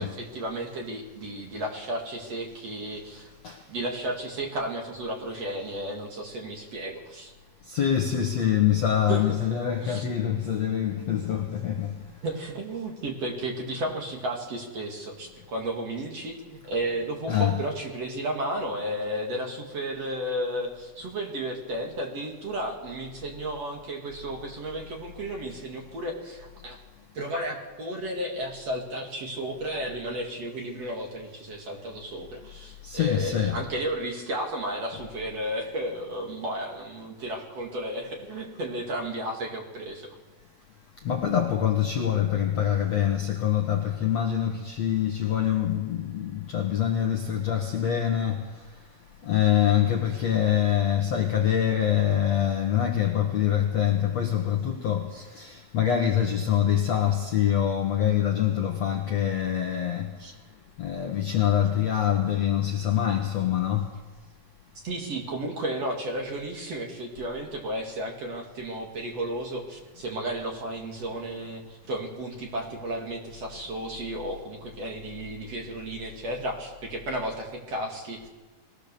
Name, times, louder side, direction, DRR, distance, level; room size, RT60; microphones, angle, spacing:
voice 1, 0.0-3.3 3.7-7.3 9.1-9.2 9.8-10.0 12.2-26.8 27.1-40.1 55.1-55.2 60.2-60.3 64.8-78.3, right 1 dB, 45° right, 2.8 m, -33 dB
voice 2, 7.7-12.0 17.3-17.6 32.8-33.6 41.0-48.5 49.2-60.1 60.8-63.9, left 10 dB, 60° left, 1.8 m, -25 dB
22.0 x 17.0 x 6.9 m
omnidirectional pair, 4.8 m